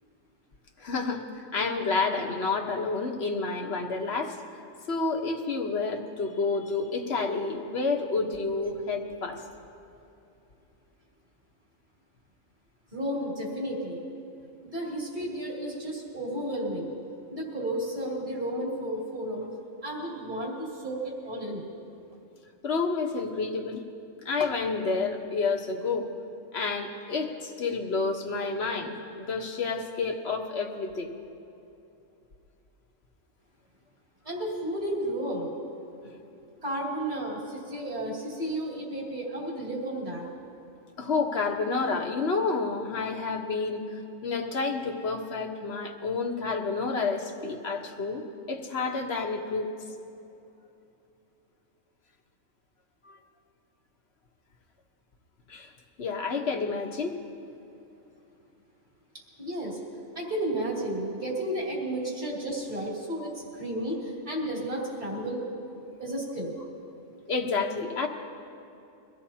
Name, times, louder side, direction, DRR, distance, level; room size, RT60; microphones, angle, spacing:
voice 1, 0.8-4.4 4.9-9.4 22.6-23.8 24.2-26.1 26.5-31.1 41.0-49.7 53.0-53.2 55.5-55.7 56.0-57.1 67.3-68.1, left 4 dB, 55° left, 3 dB, 1.4 m, -29 dB
voice 2, 12.9-14.0 14.6-16.9 17.3-19.5 19.8-21.6 34.2-35.5 36.6-40.3 59.4-59.8 60.1-65.5 66.0-66.5, right 1 dB, 35° right, -5 dB, 2.9 m, -32 dB
23.0 x 15.5 x 2.8 m, 2.8 s
omnidirectional pair, 1.4 m